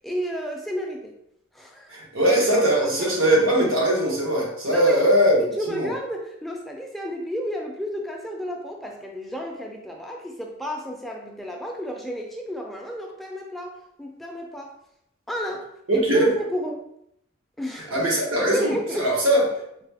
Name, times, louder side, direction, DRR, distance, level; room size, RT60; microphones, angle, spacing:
voice 1, 0.0-1.1 1.5-2.0 2.8-3.1 4.7-5.0 5.4-14.7 15.3-16.9 17.6-17.9 18.4-19.1, equal, ahead, 0 dB, 0.3 m, -32 dB
voice 2, 1.9-5.4 5.7-5.9 15.9-16.3 17.7-19.4, right 1 dB, 90° right, -2 dB, 1.0 m, -20 dB
3.9 x 2.1 x 3.3 m, 0.77 s
head